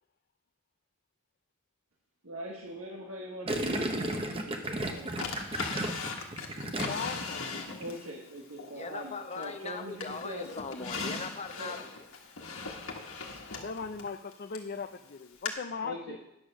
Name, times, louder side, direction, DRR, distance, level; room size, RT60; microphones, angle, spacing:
voice 1, 2.2-5.4 7.8-10.4 11.6-11.7 12.6-12.9 15.8-16.2, right 1 dB, 85° right, 1.5 m, -42 dB
Gurgling, 3.5-7.3 7.5-7.9, right 1 dB, 25° right, 1.0 m, -34 dB
Drawer open or close, 5.2-8.1 8.6-9.6 10.0-14.7 15.5-15.6, left 4 dB, 80° left, 1.5 m, -39 dB
voice 2, 6.8-7.8 13.5-16.2, left 5 dB, 50° left, 0.5 m, -39 dB
voice 3, 8.7-12.1, left 4 dB, 35° left, 0.9 m, -40 dB
10.5 x 6.8 x 6.3 m
head